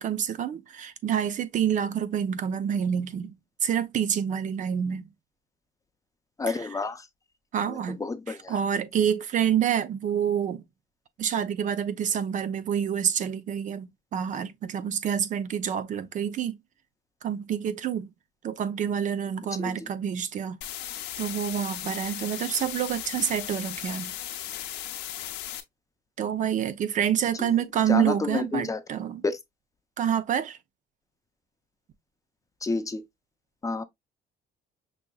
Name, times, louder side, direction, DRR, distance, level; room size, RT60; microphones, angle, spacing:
voice 1, 0.0-3.3 3.6-5.1 6.5-6.7 7.5-8.0 8.3-10.6 11.2-16.6 17.2-18.1 18.4-20.6 21.2-24.1 26.2-29.2 30.0-30.6, right 9 dB, 50° right, 0.6 m, -27 dB
voice 2, 6.4-7.0 7.7-8.5 19.6-19.8 27.4-27.5 27.9-28.8 29.2-29.4 32.6-33.0 33.6-33.8, left 3 dB, 20° left, 0.5 m, -29 dB
sound 1, 20.6-25.6, left 12 dB, 85° left, 0.7 m, -36 dB
6.1 x 2.7 x 2.3 m
cardioid pair, 110°, 17 cm